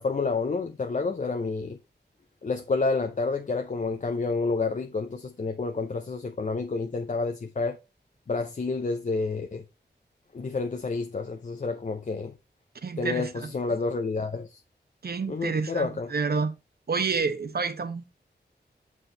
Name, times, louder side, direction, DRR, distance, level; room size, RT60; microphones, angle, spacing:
voice 1, 0.0-1.8 2.4-7.8 8.3-9.6 10.3-12.3 13.0-14.5 15.3-16.1, left 3 dB, 45° left, 0.7 m, -29 dB
voice 2, 12.8-13.5 15.0-16.5 16.9-18.1, right 5 dB, 60° right, 1.0 m, -29 dB
7.8 x 4.6 x 3.9 m
wide cardioid pair, 115°, 18 cm